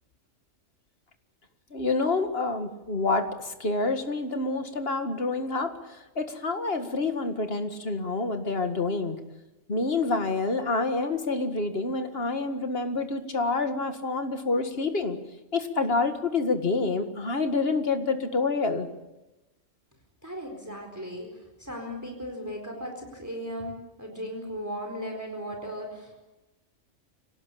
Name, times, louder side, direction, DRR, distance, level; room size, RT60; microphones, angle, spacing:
voice 1, 1.7-9.2 9.7-15.2 15.5-18.9, left 3 dB, 50° left, 7 dB, 2.1 m, -27 dB
voice 2, 20.2-21.3 21.6-23.7 24.0-26.2, equal, 15° right, 3 dB, 4.3 m, -36 dB
25.5 x 18.0 x 8.6 m, 1.0 s
omnidirectional pair, 1.3 m